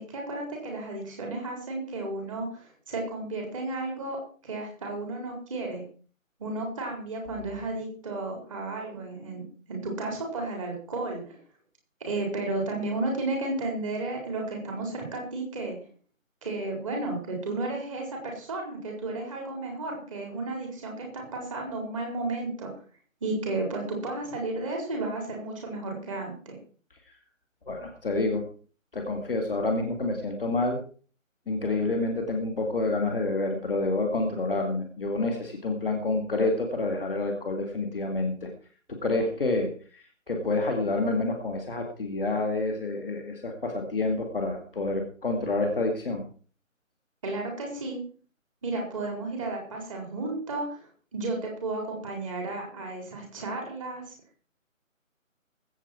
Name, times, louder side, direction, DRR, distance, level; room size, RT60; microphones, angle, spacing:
voice 1, 0.0-4.2 4.4-5.8 6.4-9.4 9.7-11.4 12.0-15.7 16.4-22.7 23.2-26.6 47.2-48.0 48.6-50.9 51.1-54.1, right 2 dB, 25° right, 0 dB, 4.5 m, -33 dB
voice 2, 27.6-28.4 28.9-30.8 31.4-38.5 39.0-46.2, left 2 dB, ahead, -15 dB, 0.9 m, -28 dB
21.0 x 8.3 x 4.6 m, 0.41 s
figure-of-eight pair, 155°, 40 cm